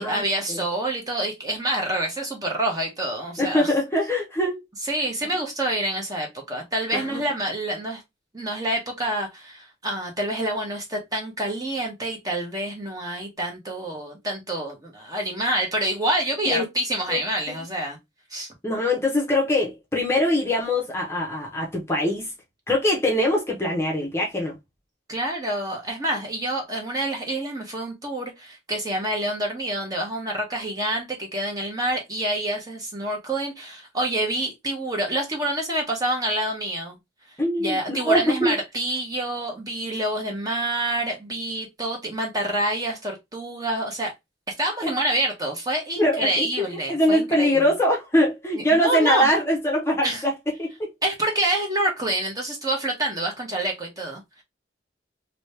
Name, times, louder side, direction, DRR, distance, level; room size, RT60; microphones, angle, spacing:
voice 1, 0.0-3.7 4.8-8.0 8.3-18.0 18.3-18.5 25.1-37.0 37.6-44.1 44.6-47.6 48.5-49.3 50.0-50.2 51.0-54.4, right 1 dB, 20° right, 1.0 m, -27 dB
voice 2, 3.4-4.6 6.9-7.2 16.5-16.6 17.1-17.2 17.5-17.6 18.6-22.3 22.7-24.6 37.4-38.6 46.0-50.3 50.6-50.9, left 1 dB, 15° left, 0.8 m, -23 dB
3.0 x 2.8 x 3.2 m
head